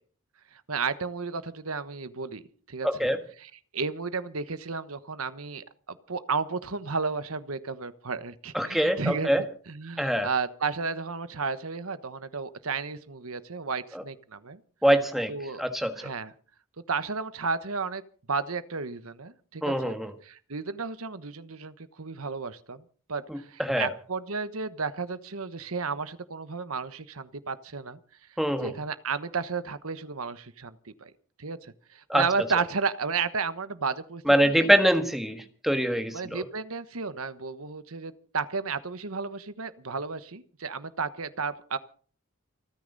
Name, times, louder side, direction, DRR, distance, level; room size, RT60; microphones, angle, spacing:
voice 1, 0.7-2.4 2.7-3.1 3.4-9.3 9.7-14.6 15.3-15.6 16.0-16.3 16.9-18.0 18.3-20.0 20.2-22.8 23.1-28.0 28.6-31.1 31.4-34.7 36.1-41.8, right 4 dB, 80° right, 12 dB, 1.2 m, -33 dB
voice 2, 2.8-3.2 8.5-9.4 10.0-10.3 13.9-14.0 14.8-15.3 15.6-16.0 19.6-20.1 23.3-23.9 28.4-28.7 32.1-32.2 34.3-36.4, equal, ahead, 6 dB, 1.5 m, -24 dB
29.5 x 9.8 x 4.0 m, 0.43 s
head